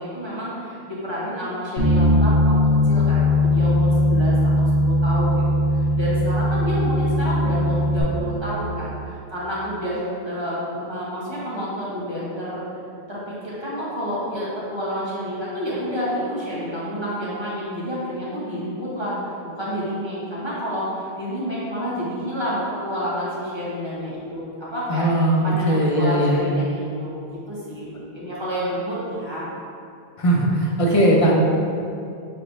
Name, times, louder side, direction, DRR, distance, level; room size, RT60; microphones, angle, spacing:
voice 1, 0.0-2.6 2.8-12.7 13.1-25.1 25.4-29.5, equal, 25° right, -8 dB, 1.1 m, -29 dB
Bass guitar, 1.8-8.0, left 1 dB, 85° left, 1.2 m, -19 dB
voice 2, 24.9-26.4 30.2-31.4, right 1 dB, 35° left, -3 dB, 0.7 m, -19 dB
5.9 x 3.3 x 2.6 m, 2.5 s
omnidirectional pair, 1.1 m